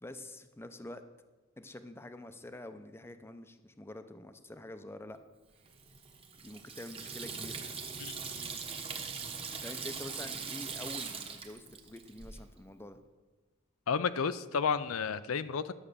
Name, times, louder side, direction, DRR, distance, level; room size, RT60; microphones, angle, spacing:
voice 1, 0.0-1.0 1.6-5.2 6.4-7.6 9.6-13.0, left 1 dB, 10° left, 9 dB, 0.6 m, -46 dB
Water tap faucet / Sink (filling or washing), 5.6-12.4, right 5 dB, 25° right, 1.1 m, -41 dB
voice 2, 8.0-8.5 13.9-15.7, left 6 dB, 75° left, 13 dB, 0.5 m, -32 dB
11.0 x 7.2 x 6.8 m, 1.2 s
head